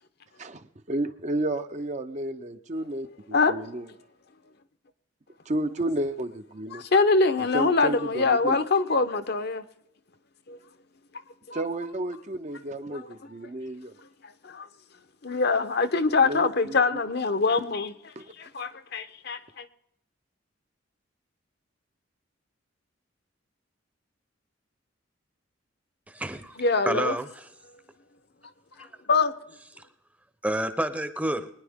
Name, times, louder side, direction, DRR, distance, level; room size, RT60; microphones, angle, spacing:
voice 1, 0.9-3.9 5.5-6.8 7.4-8.6 11.5-13.9 16.2-16.8 18.2-18.3, right 1 dB, 40° right, 0.7 m, -32 dB
voice 2, 6.7-9.6 10.5-10.6 11.5-11.6 12.9-13.0 14.4-14.7 15.2-19.7 26.6-27.1 29.1-29.3, left 4 dB, 55° left, 0.9 m, -24 dB
voice 3, 26.1-26.6 26.9-27.4 28.8-28.9 30.4-31.5, right 1 dB, 10° right, 0.8 m, -29 dB
23.0 x 10.0 x 3.6 m
head